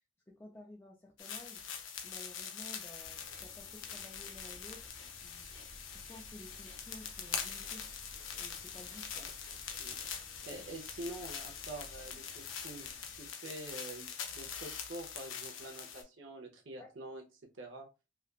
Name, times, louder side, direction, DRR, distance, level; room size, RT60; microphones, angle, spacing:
voice 1, 0.3-1.6 2.0-7.9 8.4-9.3 10.5-10.6 16.8-16.9, left 1 dB, 15° left, 0.4 m, -54 dB
sound 1, 1.2-16.0, left 7 dB, 90° left, 0.6 m, -44 dB
sound 2, 3.0-13.2, left 1 dB, 70° left, 1.0 m, -59 dB
sound 3, 4.1-12.2, equal, 10° right, 0.8 m, -59 dB
voice 2, 9.8-17.2 17.6-17.9, right 2 dB, 85° right, 0.7 m, -47 dB
3.3 x 2.3 x 2.4 m
head